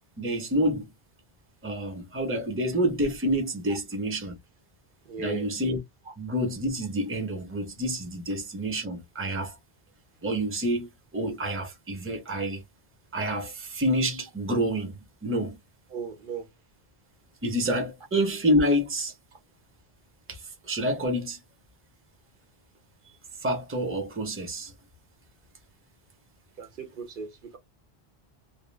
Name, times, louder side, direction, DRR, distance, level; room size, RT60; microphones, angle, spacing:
voice 1, 0.2-0.9 1.6-4.4 5.2-5.8 6.2-9.5 10.2-10.9 11.1-12.6 13.1-14.9 15.2-15.6 17.4-19.1 20.3-20.4 20.7-21.4 23.4-24.7, equal, 15° right, 0.6 m, -28 dB
voice 2, 5.1-5.5 6.1-6.2 15.9-16.5 19.3-19.4 26.6-27.6, right 5 dB, 65° right, 0.7 m, -37 dB
2.2 x 2.1 x 3.2 m
omnidirectional pair, 1.0 m